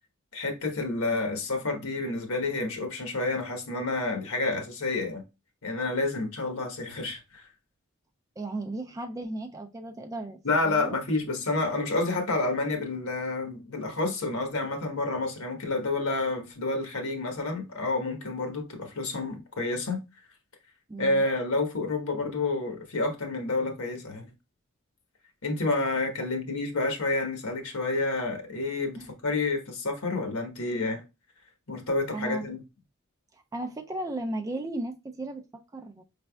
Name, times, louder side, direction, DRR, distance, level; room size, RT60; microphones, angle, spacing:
voice 1, 0.3-5.2 5.6-7.5 10.4-20.0 21.0-24.3 25.4-31.0 31.7-32.6, left 2 dB, 80° left, 1.1 m, -29 dB
voice 2, 8.4-10.4 10.6-11.0 20.9-21.2 29.0-29.1 32.1-32.5 33.3-36.0, right 2 dB, 15° right, 0.3 m, -35 dB
5.1 x 3.3 x 2.2 m
head